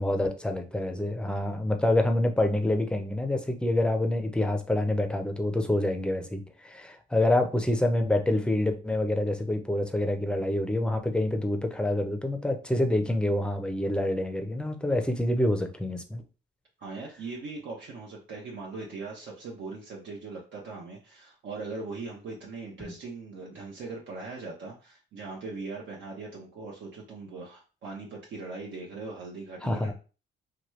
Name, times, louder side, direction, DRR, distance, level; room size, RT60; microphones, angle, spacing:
voice 1, 0.0-16.2 29.6-29.9, left 1 dB, 5° left, 5 dB, 0.5 m, -27 dB
voice 2, 16.8-29.9, right 3 dB, 70° right, -3 dB, 0.8 m, -40 dB
3.0 x 2.3 x 3.0 m, 0.34 s
cardioid pair, 90°, 20 cm